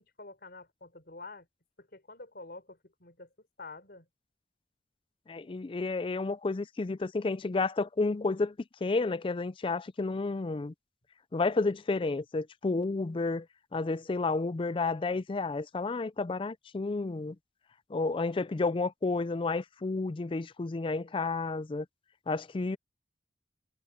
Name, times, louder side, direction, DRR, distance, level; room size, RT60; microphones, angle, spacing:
voice 1, 0.0-1.5 1.8-3.3 3.6-4.1, left 3 dB, 60° left, 4.5 m, -48 dB
voice 2, 5.3-8.6 8.8-10.7 11.3-13.5 13.7-17.4 17.9-21.9 22.3-22.8, left 3 dB, 30° left, 0.4 m, -31 dB
head